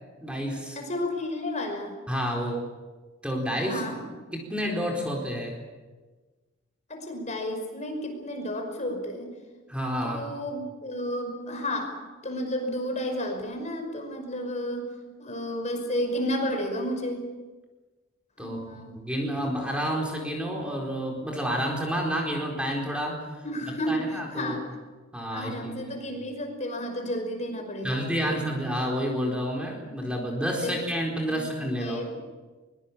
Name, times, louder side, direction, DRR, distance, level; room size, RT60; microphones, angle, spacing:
voice 1, 0.2-0.8 2.1-2.7 3.2-3.8 4.3-5.6 9.7-10.3 18.4-23.3 23.9-24.6 25.1-25.9 27.8-32.0, equal, 5° right, 0 dB, 4.3 m, -29 dB
voice 2, 0.8-2.0 3.6-4.0 6.9-9.3 10.0-11.9 12.2-17.2 18.4-19.0 23.4-24.6 25.3-28.4 29.8-30.0 30.6-30.8 31.3-31.5 31.8-32.2, left 1 dB, 40° left, 4 dB, 5.4 m, -32 dB
23.5 x 22.0 x 7.4 m, 1.3 s
head